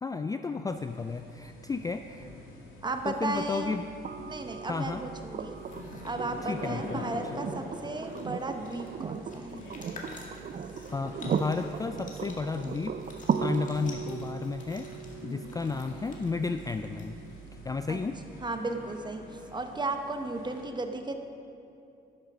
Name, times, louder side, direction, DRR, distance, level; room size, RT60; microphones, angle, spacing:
voice 1, 0.0-2.3 3.0-3.8 4.7-5.0 6.4-7.1 7.3-7.5 10.9-13.0 13.4-14.9 15.2-17.2 17.6-18.2, left 4 dB, 20° left, 8 dB, 0.3 m, -33 dB
sound 1, 0.7-20.6, left 1 dB, 90° left, 2.3 m, -46 dB
voice 2, 2.8-3.7 4.3-5.5 6.0-9.6 17.9-18.0 18.4-21.2, right 2 dB, 20° right, 6 dB, 1.0 m, -35 dB
sound 2, 4.0-18.0 19.7-19.8, right 7 dB, 40° right, 0.5 m, -37 dB
sound 3, 5.5-6.2 7.6-7.7 7.9-17.5, left 3 dB, 40° left, 1.9 m, -51 dB
11.0 x 6.6 x 6.0 m, 2.7 s
cardioid pair, 90°, 20 cm